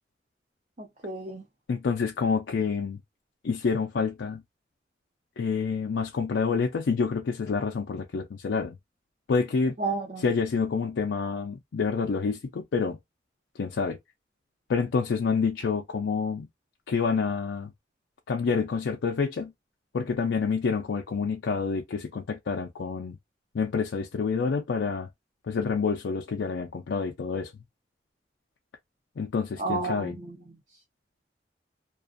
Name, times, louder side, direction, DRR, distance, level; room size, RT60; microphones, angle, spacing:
voice 1, 0.8-1.4 9.8-10.3 29.6-30.6, right 3 dB, 40° right, 0.7 m, -32 dB
voice 2, 1.7-3.0 3.4-4.4 5.4-8.8 9.3-9.8 10.2-13.0 13.6-14.0 14.7-16.5 16.9-17.7 18.3-19.5 19.9-23.2 23.5-25.1 25.5-27.5 29.2-30.1, left 5 dB, 90° left, 0.4 m, -28 dB
2.5 x 2.2 x 2.4 m
head